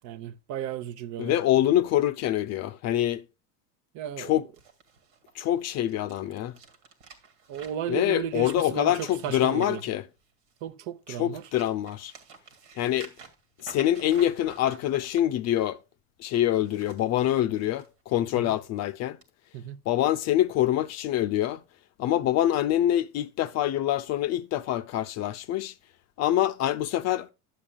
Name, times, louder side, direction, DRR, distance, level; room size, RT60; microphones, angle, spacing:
voice 1, 0.0-1.4 3.9-4.4 7.5-9.8 10.6-11.5 18.4-18.5 19.5-19.8, right 10 dB, 55° right, 0.9 m, -34 dB
voice 2, 1.2-3.2 4.2-4.5 5.3-6.6 7.9-10.0 11.1-12.1 12.8-13.1 13.6-15.8 16.2-19.2 19.9-21.6 22.0-25.7 26.2-27.3, left 12 dB, 45° left, 0.5 m, -25 dB
sound 1, 4.5-10.7 11.1-15.2 16.5-17.9 18.3-18.6 19.2-19.3, right 5 dB, 85° right, 2.1 m, -50 dB
11.5 x 7.3 x 2.3 m
supercardioid pair, 115°, 36 cm